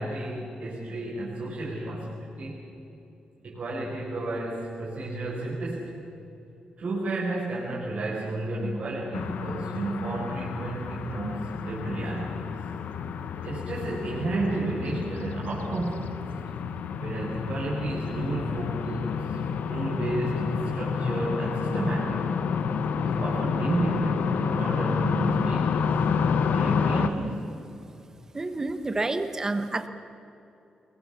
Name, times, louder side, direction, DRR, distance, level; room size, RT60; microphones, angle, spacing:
voice 1, 0.0-2.6 3.4-6.0 6.8-12.5 13.4-16.2 17.0-22.2 23.2-25.9 26.5-27.4, right 2 dB, 50° right, -5 dB, 5.1 m, -32 dB
sound 1, 9.1-27.1, left 6 dB, 85° left, 1.1 m, -29 dB
voice 2, 28.3-29.9, right 2 dB, 20° right, 9 dB, 1.2 m, -29 dB
25.0 x 22.5 x 7.2 m, 2.8 s
wide cardioid pair, 165°, 3 cm